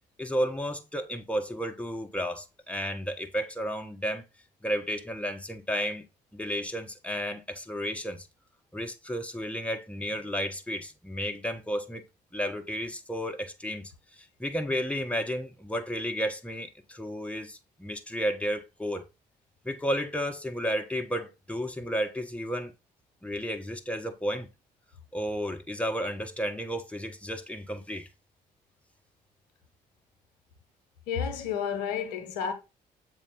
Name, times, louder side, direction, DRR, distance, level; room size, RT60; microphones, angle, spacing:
voice 1, 0.2-4.2 4.6-6.0 6.3-8.3 8.7-12.0 12.3-19.0 19.6-22.7 23.2-24.5 25.1-28.1, equal, 5° left, 1.2 m, -32 dB
voice 2, 31.1-32.5, left 7 dB, 80° left, 1.0 m, -31 dB
7.1 x 3.8 x 3.8 m
hypercardioid pair, 45°, 21 cm